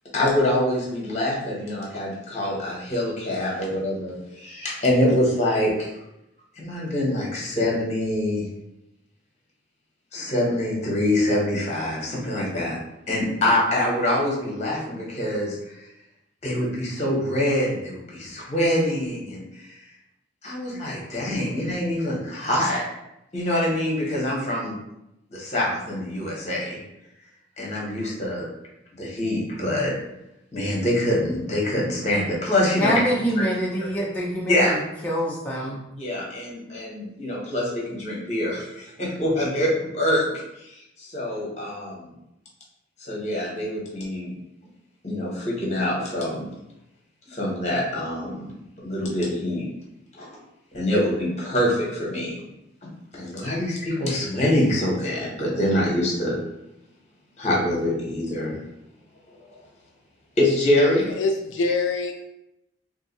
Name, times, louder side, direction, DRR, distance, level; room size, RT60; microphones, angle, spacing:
voice 1, 0.1-5.9 6.5-8.4 10.1-12.8 13.1-15.8 16.4-19.7 20.4-22.8 23.3-24.8 25.3-26.8 27.6-28.5 29.0-29.9 30.5-33.0 33.4-33.5 34.5-35.0 35.9-42.1 43.0-44.3 45.0-46.5 47.3-48.5 48.8-49.7 50.2-50.4 50.7-52.4 52.8-56.4 57.4-58.6 59.3-59.5 60.4-61.1, left 1 dB, 35° left, -3 dB, 1.0 m, -25 dB
voice 2, 32.8-34.7 35.0-35.8, equal, 10° left, -6 dB, 0.4 m, -25 dB
voice 3, 61.1-62.1, left 3 dB, 80° left, 3 dB, 0.3 m, -24 dB
2.6 x 2.4 x 4.0 m, 0.85 s
head